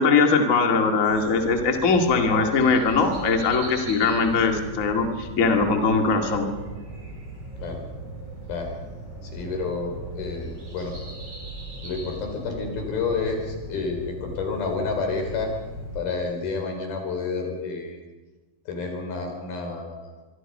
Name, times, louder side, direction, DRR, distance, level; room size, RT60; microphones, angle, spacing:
voice 1, 0.0-6.5, left 4 dB, 30° left, 3 dB, 1.7 m, -21 dB
sound 1, 1.0-16.0, right 1 dB, 40° right, 7.1 m, -38 dB
voice 2, 9.2-11.0 11.8-15.5 15.9-18.0 18.7-20.1, left 4 dB, 70° left, 3 dB, 6.1 m, -30 dB
25.0 x 24.0 x 5.5 m, 1.2 s
omnidirectional pair, 4.6 m